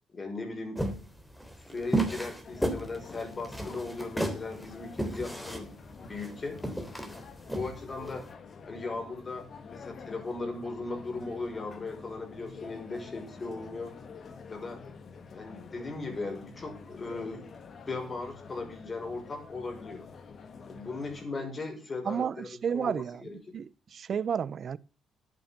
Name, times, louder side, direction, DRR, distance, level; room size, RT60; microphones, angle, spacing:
voice 1, 0.1-0.9 1.7-5.7 6.0-6.6 7.5-8.3 8.7-13.9 14.5-14.8 15.3-17.4 17.9-20.1 20.7-23.4, left 3 dB, 35° left, 5.7 m, -38 dB
sound 1, 0.8-8.2, right 1 dB, 5° left, 3.3 m, -33 dB
sound 2, 2.4-21.2, left 5 dB, 50° left, 2.1 m, -48 dB
voice 2, 22.0-24.8, right 7 dB, 55° right, 0.7 m, -32 dB
11.0 x 9.3 x 7.3 m
cardioid pair, 90°, 0 cm